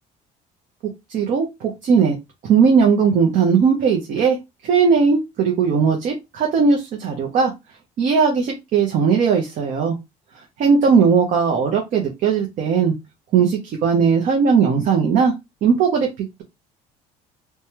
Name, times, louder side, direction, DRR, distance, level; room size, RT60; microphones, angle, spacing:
voice 1, 1.1-2.2 2.4-4.4 4.6-7.5 8.0-10.0 10.6-12.9 13.3-15.3 15.6-16.4, right 6 dB, 50° right, 2 dB, 0.7 m, -18 dB
3.1 x 2.2 x 2.8 m, 0.22 s
cardioid pair, 140°, 16 cm